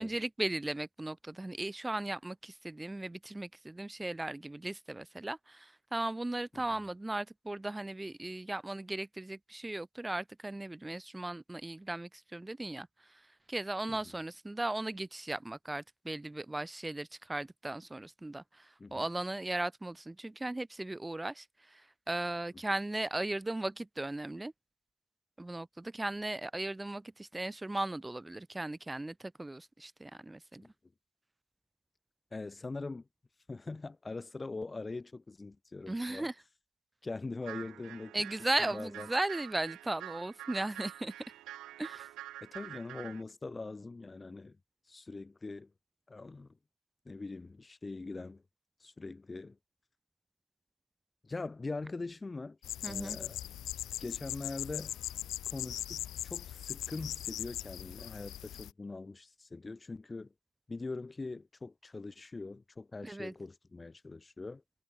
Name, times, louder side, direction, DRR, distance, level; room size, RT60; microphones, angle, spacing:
voice 1, 0.0-13.2 13.5-24.5 25.4-30.6 35.9-36.3 38.1-41.1 41.8-42.1 52.8-53.2 63.0-63.3, right 2 dB, 15° right, 0.7 m, -37 dB
voice 2, 32.3-33.1 33.5-36.3 37.0-38.2 38.6-39.1 42.4-44.6 44.9-45.7 46.1-46.6 47.1-48.4 48.8-49.6 51.2-52.6 52.9-53.4 54.0-55.0 55.5-60.3 60.7-64.6, left 3 dB, 25° left, 3.6 m, -42 dB
sound 1, 37.4-43.2, right 14 dB, 85° right, 2.7 m, -47 dB
sound 2, 52.6-58.7, left 12 dB, 80° left, 0.4 m, -40 dB
cardioid pair, 90°, 0 cm